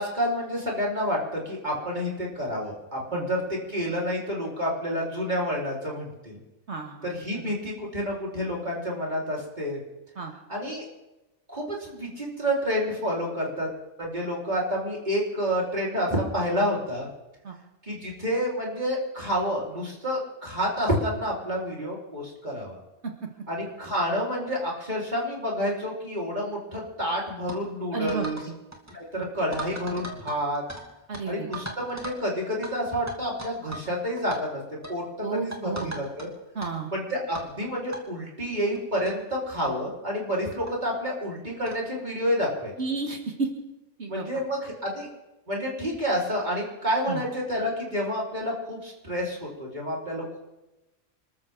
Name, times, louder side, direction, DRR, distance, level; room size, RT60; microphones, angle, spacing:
voice 1, 0.0-6.4 7.0-9.8 10.5-10.8 11.5-17.1 17.8-22.8 23.5-28.4 28.9-30.6 31.3-34.6 34.9-35.0 35.3-36.3 36.9-42.7 44.1-45.1 45.5-50.2, equal, 40° right, -4 dB, 4.6 m, -29 dB
sound 1, 27.5-27.6 28.1-28.5 28.7-28.9 29.5-30.8 31.1-31.2 31.5-32.2 32.6-32.7 33.1-33.9 34.2-34.4 34.8-35.0 35.5-36.3 36.6-36.7 37.3-37.5 37.9-38.0 38.7-38.8 39.0-39.1 39.6-39.8 40.7-40.8 41.6-41.8, right 1 dB, 15° right, 2.5 m, -38 dB
voice 2, 27.9-28.5 31.1-31.5 35.2-35.9 36.6-36.9 42.8-43.5 44.0-44.3 47.1-47.2, right 4 dB, 65° right, 3 dB, 1.9 m, -31 dB
27.0 x 13.5 x 3.9 m, 0.99 s
omnidirectional pair, 1.2 m